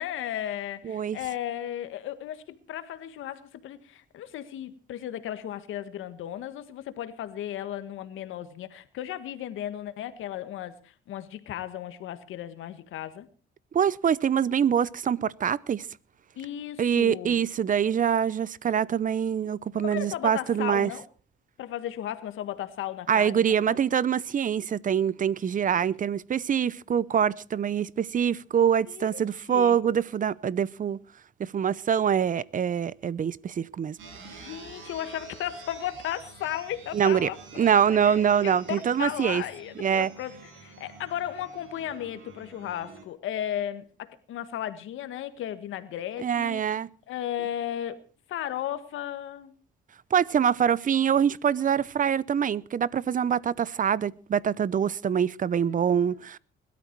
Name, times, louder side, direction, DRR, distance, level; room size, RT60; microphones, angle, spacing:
voice 1, 0.0-13.3 16.4-17.4 19.7-21.0 21.6-23.8 28.9-29.2 29.5-29.8 34.2-46.8 47.1-48.0 48.3-49.5 55.6-56.2, left 11 dB, 85° left, 1.7 m, -35 dB
voice 2, 0.8-1.2 13.7-15.9 16.8-20.9 23.1-31.0 31.4-34.0 34.4-34.5 36.9-37.3 37.6-39.4 39.8-40.1 46.2-46.9 50.1-56.4, right 8 dB, 40° right, 0.7 m, -25 dB
sound 1, 34.0-43.1, right 4 dB, 80° right, 6.1 m, -48 dB
21.5 x 13.0 x 4.6 m
cardioid pair, 90°, 20 cm